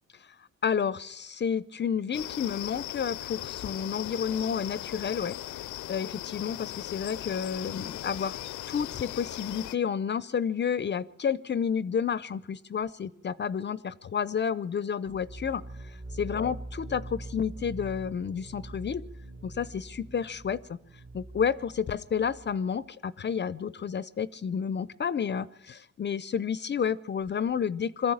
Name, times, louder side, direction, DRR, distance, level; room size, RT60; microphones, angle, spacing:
voice 1, 0.6-5.4 5.9-8.4 8.7-15.6 16.1-19.0 19.4-20.8 21.1-28.1, left 7 dB, 35° left, 18 dB, 0.6 m, -30 dB
sound 1, 2.1-9.7, left 14 dB, 75° left, 0.6 m, -38 dB
sound 2, 15.1-22.7, right 2 dB, 30° right, 1.7 m, -43 dB
22.0 x 14.0 x 8.7 m, 0.89 s
cardioid pair, 90°, 30 cm